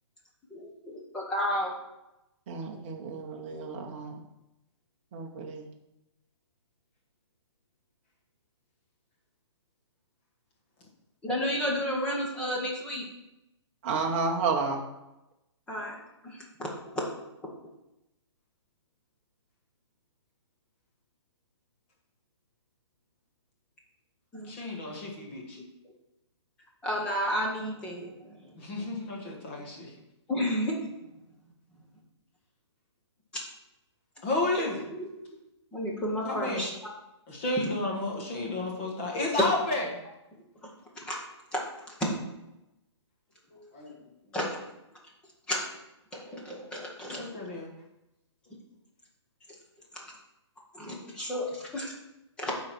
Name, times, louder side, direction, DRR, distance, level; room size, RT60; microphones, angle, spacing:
voice 1, 0.5-1.7 11.2-13.0 15.7-16.0 16.2-16.7 24.3-24.5 26.8-28.8 30.3-30.9 33.3-33.4 34.9-35.1 35.7-36.7 37.6-37.7 40.6-40.7 41.0-41.2 41.5-41.6 42.0-42.2 44.3-44.6 45.5-45.8 46.1-47.3 49.9-50.1 50.7-51.9 52.4-52.6, equal, 5° left, -2 dB, 1.0 m, -32 dB
voice 2, 2.5-4.2 5.1-5.6 13.8-14.8, right 4 dB, 25° right, 0 dB, 1.0 m, -31 dB
voice 3, 24.5-25.6 28.6-29.9 34.2-34.9 36.2-36.6 37.3-39.8 43.5-43.9 47.2-47.7, left 2 dB, 25° left, -1 dB, 1.6 m, -32 dB
9.7 x 4.0 x 5.9 m, 0.93 s
hypercardioid pair, 175°, 15 cm